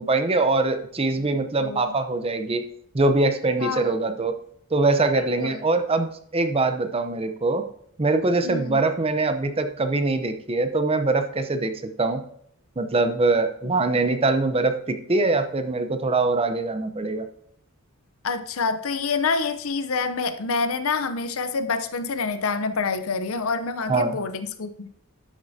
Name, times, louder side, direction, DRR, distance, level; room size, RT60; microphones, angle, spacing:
voice 1, 0.0-2.6 2.9-4.4 4.7-7.6 8.0-12.2 12.8-17.3 23.9-24.2, right 3 dB, 25° right, 8 dB, 0.7 m, -23 dB
voice 2, 3.6-4.0 5.1-5.6 8.4-8.8 18.2-24.9, left 4 dB, 70° left, 10 dB, 0.7 m, -27 dB
11.5 x 6.6 x 2.7 m, 0.67 s
head